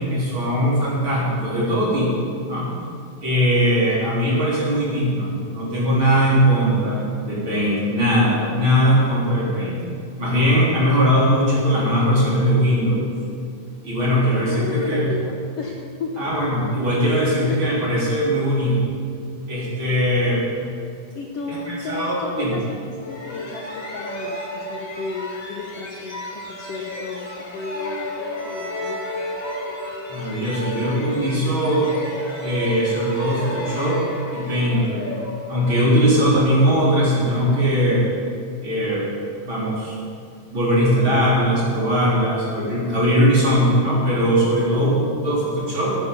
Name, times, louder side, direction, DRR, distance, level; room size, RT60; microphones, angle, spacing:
voice 1, 0.0-2.7 3.2-9.8 10.2-13.1 13.8-15.1 16.2-18.8 19.5-20.4 21.5-22.5 30.1-31.9 32.4-34.0 34.3-35.1 35.5-38.1 38.6-39.1 39.4-39.9 40.5-44.9 45.2-46.0, equal, 35° right, -6 dB, 4.3 m, -20 dB
voice 2, 14.2-16.2 17.1-17.6 19.8-20.3 21.1-29.2 44.6-44.8, left 4 dB, 80° left, 0 dB, 1.3 m, -33 dB
sound 1, 23.0-36.5, left 1 dB, 20° left, 1.8 m, -33 dB
14.0 x 12.0 x 5.5 m, 2.3 s
omnidirectional pair, 4.2 m